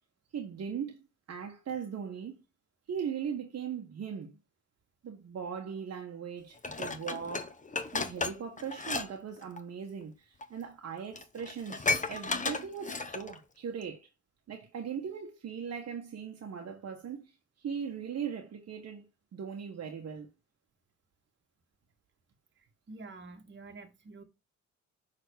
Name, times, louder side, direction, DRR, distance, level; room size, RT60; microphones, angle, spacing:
voice 1, 0.3-1.0 1.3-2.4 2.9-4.4 5.0-7.6 7.9-14.1 14.5-17.3 17.6-20.3, right 7 dB, 55° right, 1.5 m, -39 dB
Dishes pots and pans, 6.6-9.1 9.4-9.6 10.4-10.5 10.9-11.0 11.2-13.4 13.8-13.9, left 3 dB, 25° left, 1.2 m, -34 dB
voice 2, 22.6-24.2, right 3 dB, 40° right, 1.9 m, -48 dB
6.6 x 4.1 x 6.4 m
cardioid pair, 90°, 30 cm